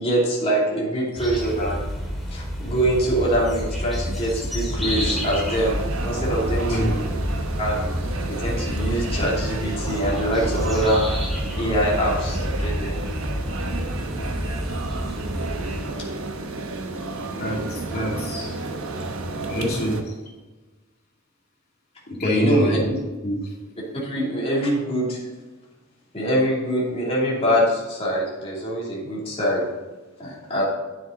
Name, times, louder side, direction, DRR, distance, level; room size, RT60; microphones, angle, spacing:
voice 1, 0.0-1.9 2.3-7.0 7.6-7.8 8.3-11.1 11.6-13.0 22.2-22.8 24.0-25.2 26.1-29.7 30.2-30.6, equal, 30° left, -5 dB, 2.9 m, -24 dB
sound 1, 1.2-15.8, equal, ahead, 2.3 m, -28 dB
sound 2, 4.8-20.0, right 3 dB, 80° right, 1.0 m, -32 dB
voice 2, 17.4-18.6 19.5-20.1 22.2-23.4, equal, 50° left, -3 dB, 2.7 m, -25 dB
10.0 x 7.3 x 3.9 m, 1.2 s
head